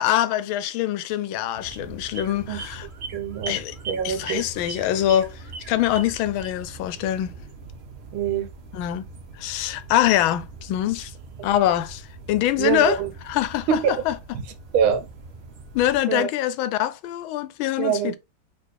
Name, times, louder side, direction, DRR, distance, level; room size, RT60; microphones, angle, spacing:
voice 1, 0.0-2.9 3.5-3.8 4.0-7.3 8.7-9.1 9.3-11.1 11.4-14.1 15.7-18.2, left 12 dB, 85° left, 1.4 m, -24 dB
sound 1, 1.5-16.0, right 3 dB, 55° right, 0.7 m, -41 dB
voice 2, 3.1-3.6 3.9-4.4 8.1-8.5 12.6-13.1 13.7-13.9 14.7-15.0 16.1-16.3 17.8-18.2, right 8 dB, 85° right, 1.7 m, -24 dB
4.2 x 3.6 x 3.2 m
omnidirectional pair, 2.2 m